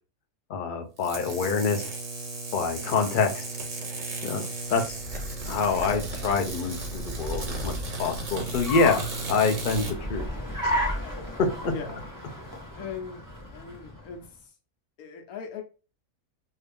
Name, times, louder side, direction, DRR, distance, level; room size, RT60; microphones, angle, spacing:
voice 1, 0.5-1.8 2.5-3.4 4.2-5.0 5.5-7.7 8.0-10.3 10.6-11.5, left 4 dB, 60° left, 4 dB, 0.5 m, -26 dB
sound 1, 1.0-9.9, right 3 dB, 40° right, 0.5 m, -35 dB
Car, 4.8-14.3, equal, 20° left, 0.6 m, -35 dB
voice 2, 11.6-12.0 12.8-13.2 13.5-14.2 15.0-15.6, left 6 dB, 80° left, 3 dB, 1.2 m, -38 dB
2.8 x 2.6 x 3.4 m, 0.33 s
omnidirectional pair, 1.6 m